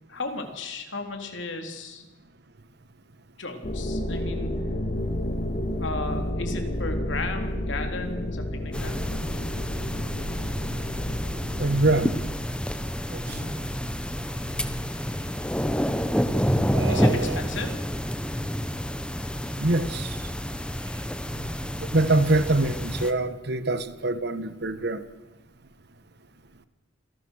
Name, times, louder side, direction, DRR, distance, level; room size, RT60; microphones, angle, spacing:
voice 1, 0.1-2.1 3.4-4.5 5.8-9.0 13.2-13.7 16.9-17.7 21.3-21.6, left 3 dB, 70° left, 5 dB, 3.7 m, -35 dB
sound 1, 3.6-12.3, left 1 dB, 40° left, 2.1 m, -31 dB
sound 2, 8.7-23.1, equal, 5° left, 1.2 m, -29 dB
voice 2, 11.6-12.2 13.1-13.4 16.7-17.4 19.6-20.2 21.9-25.0, right 2 dB, 55° right, 12 dB, 1.4 m, -25 dB
27.0 x 19.0 x 6.5 m, 1.1 s
head